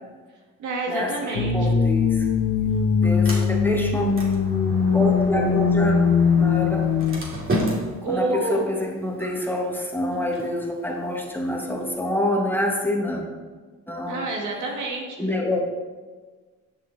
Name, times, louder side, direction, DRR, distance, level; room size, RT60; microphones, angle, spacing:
voice 1, 0.6-1.7 8.0-8.7 14.0-15.4, right 2 dB, 75° right, -1 dB, 2.1 m, -28 dB
sound 1, 1.3-7.2, left 5 dB, 75° left, 1.0 m, -21 dB
voice 2, 1.5-2.3 3.0-4.1 4.7-6.0 6.4-6.9 8.1-13.2 13.9-14.2 15.2-15.6, left 1 dB, 5° left, -1 dB, 1.6 m, -26 dB
Sliding door, 1.9-11.9, equal, 45° right, 2.6 m, -34 dB
9.6 x 6.3 x 4.1 m, 1.4 s
cardioid pair, 90°, 30 cm